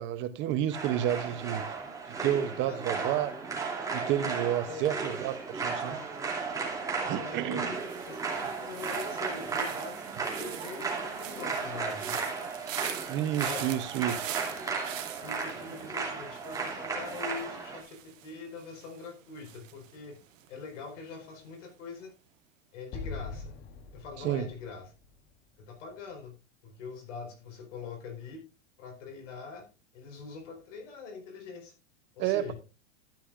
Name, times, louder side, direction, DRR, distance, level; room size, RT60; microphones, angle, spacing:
voice 1, 0.0-1.6 2.2-3.3 3.9-6.0 7.0-7.7 13.1-14.2 24.2-24.4 32.2-32.5, right 11 dB, 30° right, 0.8 m, -30 dB
sound 1, 0.7-17.8, right 4 dB, 10° right, 2.6 m, -35 dB
voice 2, 2.6-3.2 4.6-5.0 7.1-10.0 10.3-12.2 13.3-13.7 15.2-20.2 20.5-22.1 22.7-23.6 23.9-24.9 25.6-26.3 26.6-28.4 28.8-29.7 29.9-31.7 32.1-32.5, left 4 dB, 70° left, 4.6 m, -43 dB
sound 2, 7.8-20.8 21.1-21.5, right 12 dB, 85° right, 1.4 m, -44 dB
Explosion, 22.9-26.2, left 4 dB, 30° left, 1.0 m, -43 dB
13.0 x 9.9 x 2.5 m
supercardioid pair, 145°, 38 cm